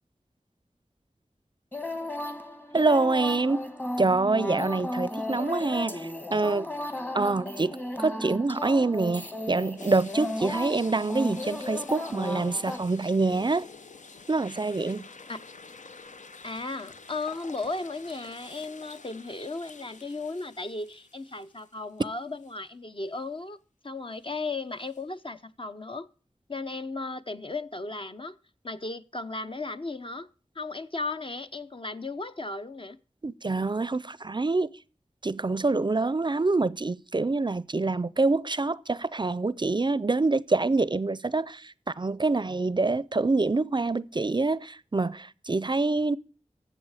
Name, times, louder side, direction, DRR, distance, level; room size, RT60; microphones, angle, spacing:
sound 1, 1.7-12.8, left 1 dB, 15° left, 1.3 m, -35 dB
voice 1, 2.7-3.7 4.0-6.7 7.1-13.7 14.3-15.0 33.2-34.8 35.2-46.2, right 3 dB, 40° right, 0.4 m, -26 dB
sound 2, 9.8-22.0 22.4-22.5 24.9-25.0, left 4 dB, 85° left, 0.6 m, -48 dB
voice 2, 16.4-23.6 23.8-26.1 26.5-28.4 28.6-30.3 30.5-33.0, left 3 dB, 45° left, 0.7 m, -35 dB
14.5 x 7.3 x 4.8 m
wide cardioid pair, 60°, 12 cm